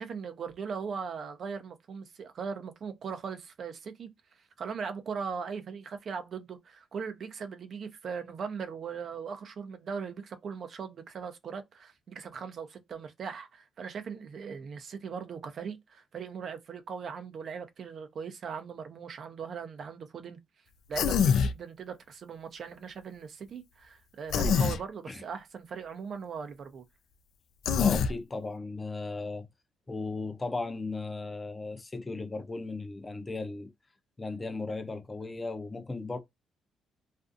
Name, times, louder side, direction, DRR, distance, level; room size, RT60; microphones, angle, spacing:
voice 1, 0.0-4.1 4.6-20.4 20.9-26.8, right 6 dB, 55° right, 0.6 m, -39 dB
Human voice, 20.9-21.5 24.3-24.8 27.7-28.1, left 6 dB, 75° left, 0.3 m, -24 dB
voice 2, 27.8-29.5 29.9-33.7 34.2-36.2, left 3 dB, 20° left, 0.5 m, -36 dB
2.5 x 2.4 x 2.5 m
cardioid pair, 90°, 0 cm